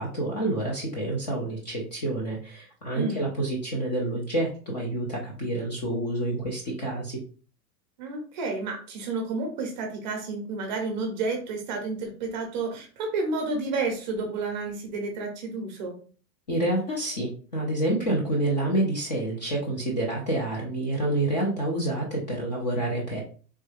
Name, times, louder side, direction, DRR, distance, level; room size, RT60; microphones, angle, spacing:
voice 1, 0.0-7.2 16.5-23.2, right 1 dB, 30° left, -2 dB, 0.4 m, -28 dB
voice 2, 2.9-3.3 8.0-16.0, right 3 dB, 30° right, 3 dB, 0.6 m, -31 dB
3.2 x 2.2 x 3.1 m, 0.41 s
supercardioid pair, 165°, 47 cm